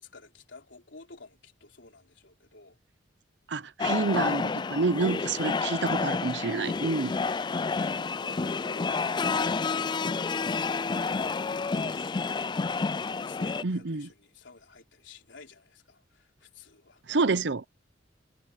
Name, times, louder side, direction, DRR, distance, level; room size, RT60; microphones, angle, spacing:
voice 1, 0.0-2.8 7.9-12.6 13.2-17.0, left 3 dB, 80° left, 3.8 m, -51 dB
voice 2, 3.5-7.1 13.6-14.1 17.1-17.7, right 3 dB, 65° right, 0.8 m, -28 dB
sound 1, 3.8-13.6, left 4 dB, 25° left, 0.3 m, -29 dB
head